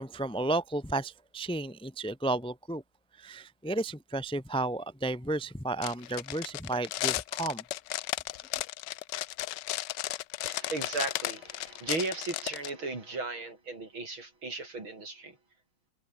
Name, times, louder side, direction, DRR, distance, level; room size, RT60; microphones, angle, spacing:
voice 1, 0.0-2.8 3.2-7.6, right 2 dB, 5° left, 0.9 m, -33 dB
sound 1, 5.8-12.7, left 15 dB, 70° left, 1.2 m, -34 dB
voice 2, 10.4-15.4, right 3 dB, 85° right, 6.8 m, -36 dB
omnidirectional pair, 2.2 m